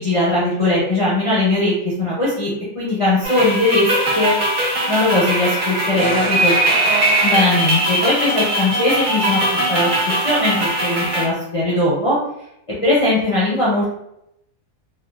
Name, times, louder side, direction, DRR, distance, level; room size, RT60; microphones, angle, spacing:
voice 1, 0.0-3.9 4.1-4.3 4.9-6.5 7.2-9.4 9.7-9.9 10.2-12.2 12.8-13.9, left 2 dB, 45° left, -8 dB, 0.4 m, -19 dB
sound 1, 3.2-11.3, right 1 dB, 50° right, 0.6 m, -20 dB
2.8 x 2.2 x 2.3 m, 0.77 s
omnidirectional pair, 1.7 m